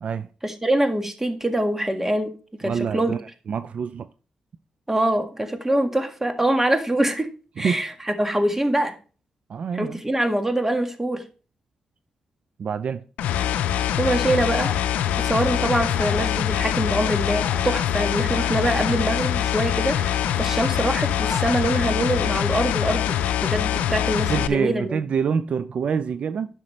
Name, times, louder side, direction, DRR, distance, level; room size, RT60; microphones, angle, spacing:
voice 1, 0.4-2.3 2.6-3.1 4.9-7.3 7.6-8.9 9.7-11.2 14.0-14.7 15.2-23.1 23.4-25.0, right 1 dB, 15° right, 1.7 m, -24 dB
voice 2, 2.6-3.2 3.5-4.1 7.6-7.8 9.5-10.0 12.6-13.0 24.3-26.5, right 6 dB, 60° right, 0.4 m, -26 dB
sound 1, 13.2-24.5, left 10 dB, 90° left, 0.5 m, -24 dB
sound 2, 13.6-15.2 15.5-21.5, left 4 dB, 50° left, 2.1 m, -39 dB
9.9 x 6.1 x 3.2 m
cardioid pair, 60°, 2 cm